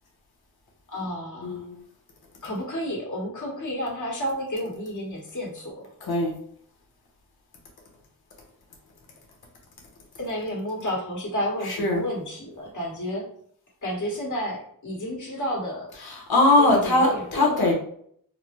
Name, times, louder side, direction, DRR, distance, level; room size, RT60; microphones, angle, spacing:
voice 1, 0.9-1.6 2.4-5.8 10.2-13.3 13.8-15.9 16.6-17.7, equal, 55° left, -3 dB, 1.5 m, -31 dB
voice 2, 1.4-1.8 6.0-6.3 11.6-12.0 16.0-17.7, left 2 dB, 80° left, 0 dB, 0.9 m, -21 dB
3.9 x 2.0 x 3.0 m, 0.63 s
cardioid pair, 65°, 36 cm